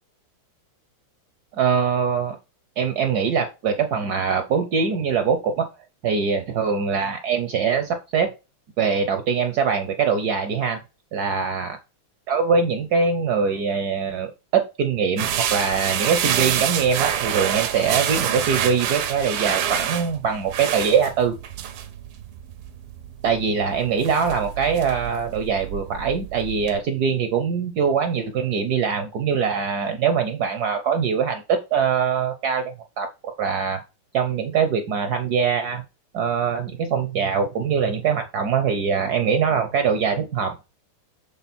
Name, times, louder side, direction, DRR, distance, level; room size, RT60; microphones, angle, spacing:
voice 1, 1.5-2.4 2.8-5.7 6.0-8.3 8.8-10.8 11.1-11.8 12.3-21.3 23.2-33.1 33.4-33.8 34.1-35.8 36.1-40.5, right 6 dB, 65° right, 7 dB, 1.0 m, -23 dB
sound 1, 15.2-26.8, right 9 dB, 85° right, 1.8 m, -27 dB
7.2 x 3.7 x 4.2 m, 0.28 s
omnidirectional pair, 2.4 m